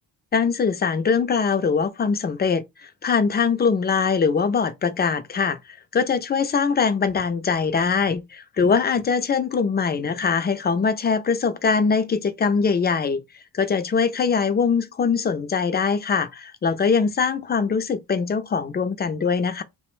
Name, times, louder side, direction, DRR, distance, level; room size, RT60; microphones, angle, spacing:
voice 1, 0.3-5.6 5.9-13.2 13.5-19.6, left 5 dB, 25° left, 0.4 m, -22 dB
3.0 x 2.1 x 3.0 m
cardioid pair, 115°, 42 cm